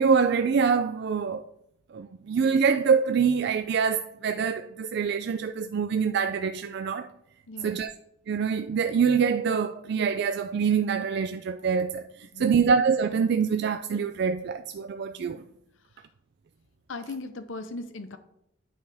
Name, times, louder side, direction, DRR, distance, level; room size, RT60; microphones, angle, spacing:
voice 1, 0.0-1.4 1.9-7.1 7.6-7.9 8.3-15.4, right 6 dB, 60° right, 0.3 m, -25 dB
voice 2, 7.5-7.9 12.2-12.7 15.9-16.0 16.9-18.2, left 3 dB, 80° left, 0.7 m, -38 dB
9.2 x 5.5 x 3.4 m
head